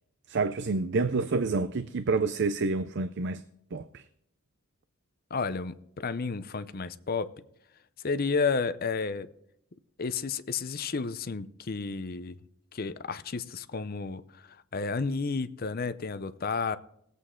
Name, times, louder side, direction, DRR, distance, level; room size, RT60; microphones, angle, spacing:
voice 1, 0.3-3.4 3.7-4.0, right 3 dB, 50° right, 0.5 m, -28 dB
voice 2, 5.3-7.3 8.0-9.3 10.0-12.4 12.7-14.4 14.7-16.8, left 4 dB, 45° left, 0.6 m, -31 dB
19.5 x 8.2 x 3.7 m
head